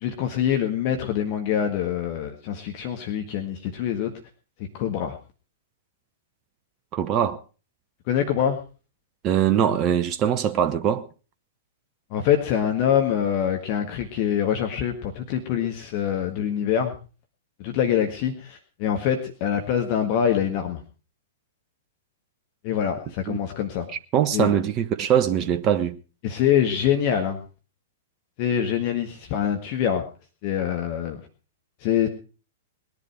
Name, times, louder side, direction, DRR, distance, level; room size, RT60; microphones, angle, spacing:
voice 1, 0.0-4.1 4.7-5.2 8.1-8.6 12.1-16.9 17.6-20.8 22.6-23.9 24.3-24.5 26.2-27.4 28.4-30.0 30.4-31.2 31.8-32.1, left 9 dB, 40° left, 1.7 m, -24 dB
voice 2, 6.9-7.4 9.2-11.0 23.3-23.4 24.1-26.0, right 9 dB, 30° right, 0.8 m, -22 dB
20.5 x 11.0 x 4.7 m
figure-of-eight pair, 105°, 0 cm